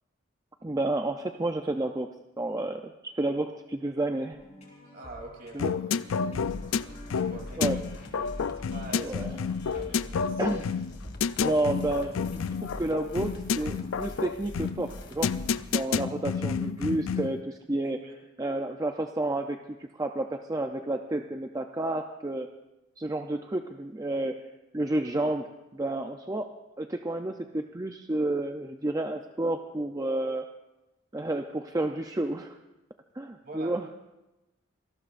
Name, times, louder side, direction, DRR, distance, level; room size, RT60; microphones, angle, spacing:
voice 1, 0.6-2.1 2.4-4.4 5.5-5.7 7.6-7.8 9.0-9.3 10.4-10.7 11.4-12.2 12.7-15.3 15.7-18.0 18.4-22.5 23.0-24.5 24.7-25.5 25.7-30.5 31.1-32.6 33.1-33.9, right 2 dB, 20° right, 5 dB, 0.5 m, -30 dB
sound 1, 4.3-14.1, left 1 dB, 35° left, 4.4 m, -49 dB
voice 2, 4.9-7.8 8.5-10.8 18.0-18.1 33.4-33.7, right 2 dB, 50° right, 1 dB, 3.3 m, -46 dB
sound 2, 5.6-17.4, left 6 dB, 80° left, 0.4 m, -30 dB
sound 3, 6.4-15.8, left 1 dB, 60° left, 2.1 m, -44 dB
26.5 x 19.0 x 2.6 m, 0.99 s
head